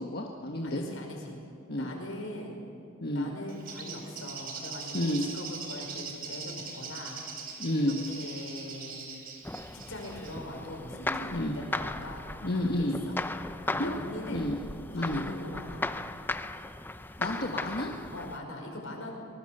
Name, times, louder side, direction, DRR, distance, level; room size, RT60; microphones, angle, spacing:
voice 1, 0.0-0.8 1.7-1.9 3.0-3.3 4.9-5.2 7.6-8.0 11.3-11.6 12.4-13.0 13.8-13.9 14.3-14.6 14.9-15.2 17.2-17.9, left 1 dB, 50° left, 0 dB, 1.4 m, -30 dB
voice 2, 0.6-1.4 1.8-2.7 3.1-7.2 7.8-9.0 9.7-13.2 13.7-14.5 15.0-15.9 18.1-19.1, left 1 dB, 80° left, 2 dB, 5.3 m, -41 dB
Bird, 3.5-10.4, right 5 dB, 50° right, 3.5 m, -42 dB
sound 1, 9.4-18.4, left 2 dB, 10° left, 0.6 m, -37 dB
24.5 x 20.0 x 6.7 m, 2.4 s
head